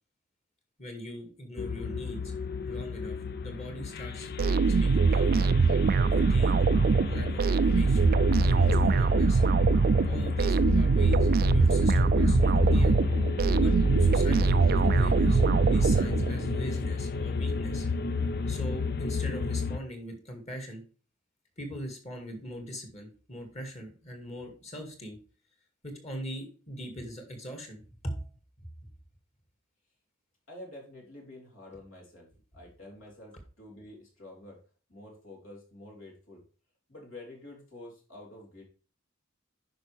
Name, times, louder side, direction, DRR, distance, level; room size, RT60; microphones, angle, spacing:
voice 1, 0.8-2.3 2.6-3.2 3.4-4.3 4.6-5.5 6.3-6.6 7.1-8.2 8.5-9.4 10.1-13.0 13.6-17.9 18.5-20.8 21.6-25.2 25.8-28.3 28.6-28.7, equal, 35° left, 4 dB, 2.1 m, -41 dB
sound 1, 1.6-19.8, left 4 dB, 50° left, 0.5 m, -31 dB
sound 2, 4.4-16.6, right 4 dB, 45° right, 0.3 m, -23 dB
voice 2, 30.5-32.3 32.5-34.6 34.9-36.4 36.9-38.6, left 1 dB, 70° left, -2 dB, 3.5 m, -48 dB
10.0 x 5.5 x 3.4 m, 0.38 s
head